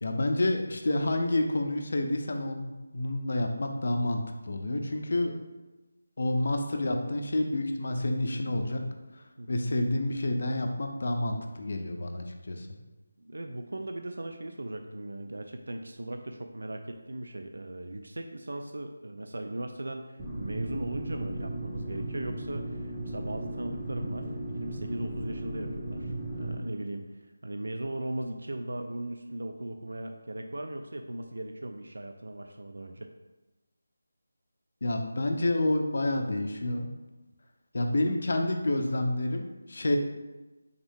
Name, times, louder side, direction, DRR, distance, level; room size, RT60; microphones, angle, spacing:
voice 1, 0.0-5.3 6.2-8.8 9.5-12.7 34.8-36.9 37.7-40.0, left 1 dB, 55° left, 4 dB, 0.5 m, -29 dB
voice 2, 13.2-27.1 27.4-33.1, right 1 dB, 80° right, 5 dB, 0.3 m, -38 dB
sound 1, 20.2-26.6, right 1 dB, 15° right, 0.5 m, -36 dB
3.6 x 2.6 x 3.5 m, 1.1 s
figure-of-eight pair, 170°, 0 cm